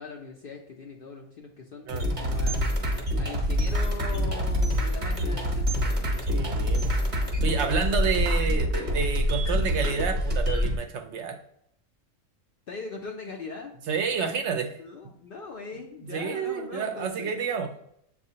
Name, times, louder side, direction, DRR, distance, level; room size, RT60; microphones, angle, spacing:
voice 1, 0.0-2.8 3.2-6.1 12.7-13.7 14.8-17.3, left 4 dB, 60° left, 1 dB, 0.6 m, -40 dB
sound 1, 1.9-10.8, equal, 40° right, 0.9 m, -26 dB
voice 2, 6.3-6.9 7.4-11.4 13.9-14.8 16.1-17.8, right 6 dB, 70° right, 6 dB, 0.8 m, -29 dB
7.2 x 2.4 x 2.8 m, 0.74 s
omnidirectional pair, 1.4 m